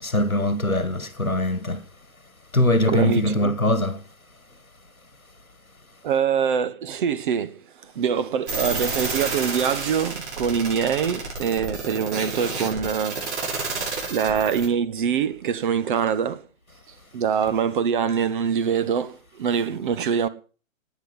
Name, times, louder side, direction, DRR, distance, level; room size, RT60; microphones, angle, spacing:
voice 1, 0.0-1.8 2.5-4.0, left 1 dB, 90° left, 2.0 m, -22 dB
voice 2, 2.9-3.5 6.0-7.6 7.9-16.4 17.1-20.3, right 7 dB, 40° right, 1.2 m, -24 dB
sound 1, 8.5-14.7, right 3 dB, 55° right, 7.9 m, -30 dB
20.0 x 8.4 x 5.6 m
figure-of-eight pair, 125°, 41 cm